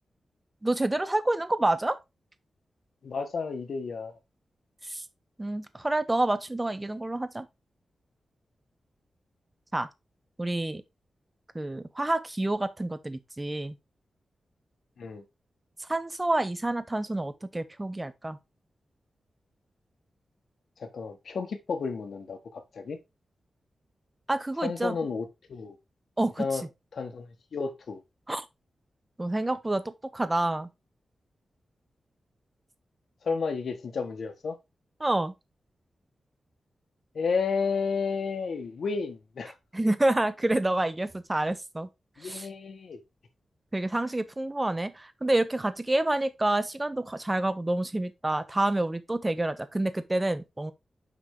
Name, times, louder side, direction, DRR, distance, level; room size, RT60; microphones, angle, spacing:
voice 1, 0.6-2.0 4.9-5.0 5.4-7.5 9.7-9.9 10.4-10.8 11.5-13.7 15.9-18.4 24.3-24.9 26.2-26.5 28.3-28.4 29.2-30.7 35.0-35.3 39.7-41.9 42.2-42.5 43.7-50.7, right 2 dB, 15° right, 0.8 m, -28 dB
voice 2, 3.0-4.1 15.0-15.2 20.8-23.0 24.6-25.8 26.4-26.7 26.9-28.0 33.2-34.6 37.1-39.5 42.2-43.0, left 5 dB, 70° left, 1.5 m, -32 dB
6.3 x 6.1 x 3.7 m
wide cardioid pair, 130°, 0 cm